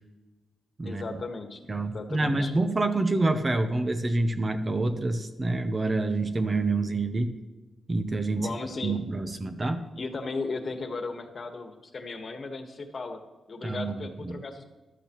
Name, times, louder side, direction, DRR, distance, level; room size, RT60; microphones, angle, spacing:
voice 1, 0.8-1.6 1.9-2.5 8.3-9.0 9.9-13.2 13.5-14.7, left 3 dB, 40° left, 5 dB, 1.4 m, -36 dB
voice 2, 1.7-7.4 7.9-8.5 8.8-9.8 13.6-14.4, right 2 dB, 25° right, 8 dB, 0.8 m, -27 dB
14.0 x 12.0 x 3.1 m, 1.2 s
wide cardioid pair, 130°, 0 cm